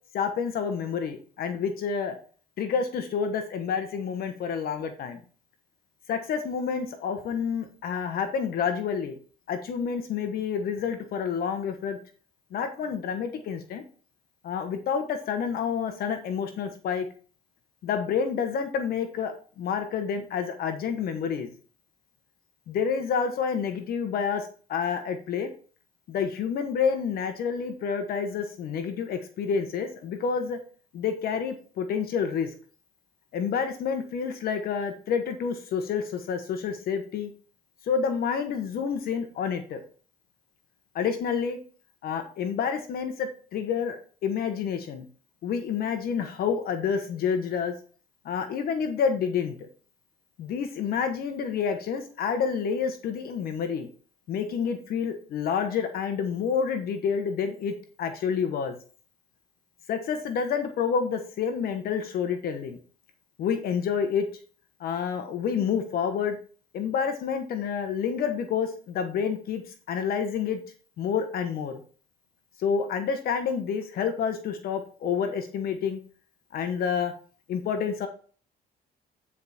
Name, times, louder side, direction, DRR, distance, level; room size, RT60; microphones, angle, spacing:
voice 1, 0.1-2.1 2.6-5.2 6.1-9.2 9.5-12.0 12.5-13.8 14.4-17.1 17.8-21.5 22.7-25.5 26.1-30.6 30.9-32.5 33.3-37.3 37.8-39.8 40.9-41.6 42.0-45.1 45.4-47.7 48.2-49.5 50.4-53.9 54.3-58.8 59.9-62.8 63.4-64.3 64.8-66.4 66.7-69.6 69.9-70.6 71.0-71.8 72.6-76.0 76.5-77.1 77.5-78.1, left 6 dB, 65° left, 7 dB, 1.2 m, -28 dB
9.5 x 4.9 x 4.3 m, 0.41 s
cardioid pair, 110°, 17 cm